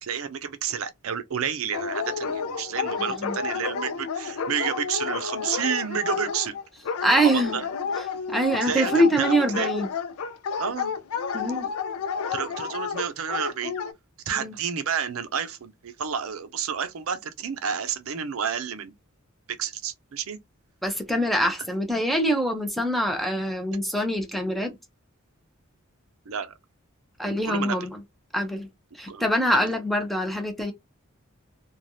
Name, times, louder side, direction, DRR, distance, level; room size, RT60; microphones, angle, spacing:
voice 1, 0.0-6.6 7.1-7.6 8.6-9.7 10.6-10.9 12.3-13.8 14.3-18.9 19.5-20.4 26.3-26.5 27.3-27.8 29.1-29.2, right 7 dB, 70° right, 0.5 m, -30 dB
Dog, 1.7-13.9, left 5 dB, 75° left, 0.4 m, -31 dB
voice 2, 3.0-3.4 7.0-7.6 7.9-9.9 11.3-11.7 14.3-14.6 20.8-24.7 27.2-28.0 28.3-28.7 28.9-30.7, equal, ahead, 0.6 m, -24 dB
3.2 x 2.3 x 2.5 m
head